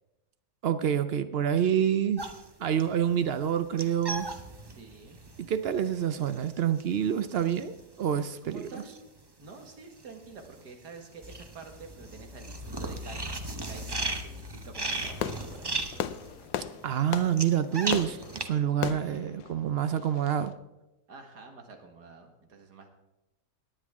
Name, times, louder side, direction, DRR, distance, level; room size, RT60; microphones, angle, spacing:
voice 1, 0.6-2.2 2.6-4.3 5.4-8.8 16.8-20.5, right 9 dB, 70° right, 12 dB, 0.6 m, -27 dB
sound 1, 2.2-9.7 9.9-18.5, right 2 dB, 25° right, 0.5 m, -37 dB
voice 2, 4.6-5.2 8.5-9.0 9.4-13.4 13.7-15.8 17.8-18.3 21.1-22.9, right 4 dB, 90° right, 4 dB, 2.2 m, -48 dB
Fireworks, 14.9-20.5, left 10 dB, 80° left, 1.2 m, -37 dB
18.0 x 9.9 x 3.6 m, 0.98 s
omnidirectional pair, 1.7 m